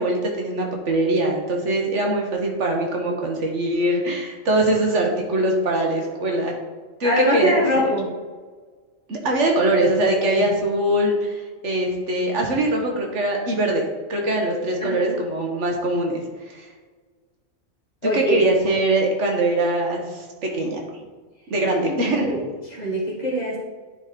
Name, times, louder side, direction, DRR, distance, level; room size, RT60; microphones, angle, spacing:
voice 1, 0.0-6.6 7.0-7.9 9.1-13.8 14.1-16.7 18.0-20.8 21.5-22.3, right 1 dB, 65° right, 1 dB, 1.4 m, -22 dB
voice 2, 7.0-8.1 10.3-10.5 14.8-15.2 18.0-18.4 22.2-22.4 22.7-23.6, equal, 35° left, -3 dB, 1.5 m, -22 dB
9.8 x 4.1 x 3.7 m, 1.4 s
omnidirectional pair, 1.4 m